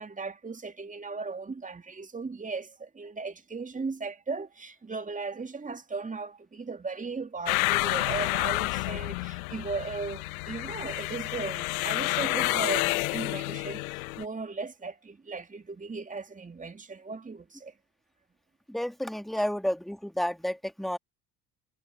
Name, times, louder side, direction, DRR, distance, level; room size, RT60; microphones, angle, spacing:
voice 1, 0.0-17.7, right 4 dB, 15° right, 2.5 m, -37 dB
sound 1, 7.5-14.2, left 24 dB, 65° left, 1.1 m, -29 dB
voice 2, 18.7-21.0, equal, ahead, 2.2 m, -31 dB
figure-of-eight pair, 55°, 46 cm